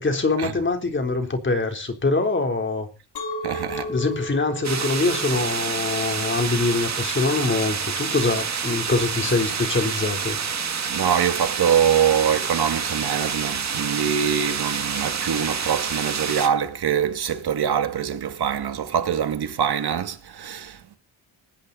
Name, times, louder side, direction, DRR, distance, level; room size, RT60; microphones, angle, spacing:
voice 1, 0.0-2.9 3.9-10.4, left 3 dB, 25° left, 3.7 m, -24 dB
Chink clink, 3.2-8.3, left 1 dB, 80° left, 6.2 m, -36 dB
voice 2, 3.4-3.9 10.9-21.0, right 8 dB, 65° right, 2.5 m, -24 dB
sound 1, 4.6-16.5, right 6 dB, 40° right, 2.3 m, -28 dB
19.0 x 17.0 x 4.2 m
wide cardioid pair, 135°, 42 cm